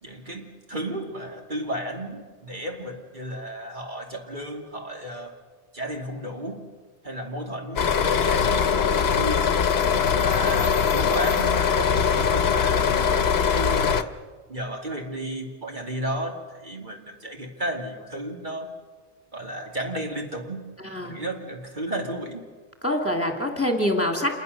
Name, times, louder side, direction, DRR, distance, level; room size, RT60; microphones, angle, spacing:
voice 1, 0.0-5.4 5.7-6.7 7.0-9.6 10.1-14.2 14.5-18.7 19.3-20.6 21.0-22.4, right 1 dB, 45° right, 1 dB, 2.7 m, -33 dB
sound 1, 7.8-14.0, left 6 dB, 65° left, 1.1 m, -22 dB
voice 2, 20.8-21.2 22.8-24.3, left 1 dB, 10° left, 3 dB, 2.7 m, -25 dB
28.0 x 22.0 x 6.7 m, 1.4 s
omnidirectional pair, 1.1 m